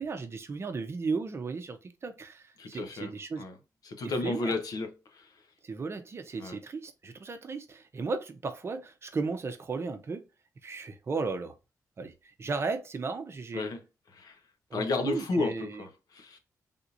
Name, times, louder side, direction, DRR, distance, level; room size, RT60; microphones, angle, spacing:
voice 1, 0.0-3.4 4.0-4.6 5.6-10.2 10.6-11.6 12.0-13.6 14.7-15.8, right 4 dB, 40° right, 0.6 m, -35 dB
voice 2, 2.6-3.1 3.4-3.5 3.8-5.4 6.4-6.6 13.5-13.8 14.1-14.4 14.7-16.4, left 3 dB, 70° left, 0.8 m, -33 dB
3.5 x 2.8 x 2.5 m
cardioid pair, 85°, 7 cm